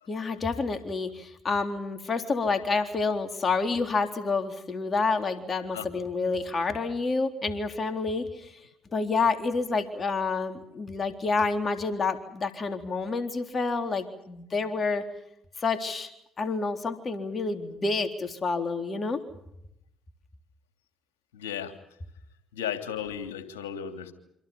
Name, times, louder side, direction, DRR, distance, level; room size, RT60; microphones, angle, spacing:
voice 1, 0.1-8.6 8.9-15.0 15.6-16.1 16.4-19.2, left 4 dB, 40° left, 6 dB, 3.7 m, -28 dB
voice 2, 21.3-21.7 22.5-24.1, left 9 dB, 85° left, 6 dB, 3.1 m, -34 dB
28.5 x 26.5 x 5.5 m, 0.79 s
hypercardioid pair, 55°, 0 cm